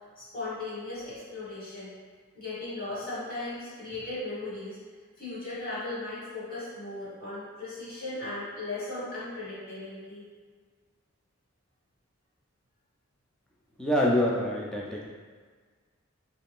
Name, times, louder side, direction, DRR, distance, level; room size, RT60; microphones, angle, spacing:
voice 1, 0.2-1.9 2.3-4.8 5.2-10.2, left 2 dB, 45° left, -10 dB, 1.5 m, -37 dB
voice 2, 13.8-15.1, left 1 dB, 5° left, -4 dB, 0.4 m, -26 dB
3.3 x 2.4 x 3.5 m, 1.5 s
head